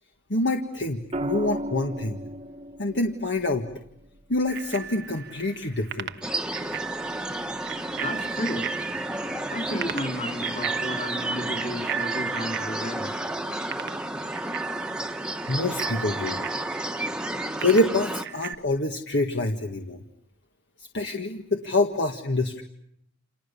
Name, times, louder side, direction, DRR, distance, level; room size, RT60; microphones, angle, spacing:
voice 1, 0.3-2.2 2.8-3.7 4.3-6.1 15.5-16.4 17.6-20.0 20.9-22.6, left 2 dB, 60° left, 3 dB, 1.8 m, -26 dB
sound 1, 1.1-5.3 7.0-7.3, equal, 30° right, 1.3 m, -36 dB
Bicycle bell, 4.5-18.5, right 8 dB, 55° right, 1.0 m, -36 dB
sound 2, 6.2-18.2, right 1 dB, 5° right, 1.4 m, -32 dB
voice 2, 8.0-8.7 9.5-13.2, left 1 dB, 35° left, 4 dB, 4.5 m, -33 dB
29.5 x 28.0 x 7.0 m, 0.75 s
head